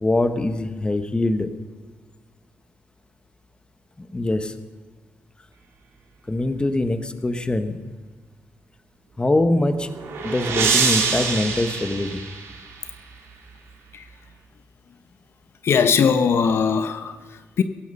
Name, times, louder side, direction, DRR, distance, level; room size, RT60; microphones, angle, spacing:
voice 1, 0.0-1.5 4.0-4.5 6.3-8.0 9.2-9.9 10.2-12.3, left 2 dB, 20° left, 9 dB, 1.3 m, -23 dB
sound 1, 9.5-12.9, right 5 dB, 85° right, 3.0 m, -25 dB
voice 2, 15.6-17.6, left 6 dB, 70° left, 9 dB, 0.9 m, -20 dB
16.5 x 16.0 x 5.6 m, 1.5 s
cardioid pair, 80°, 4 cm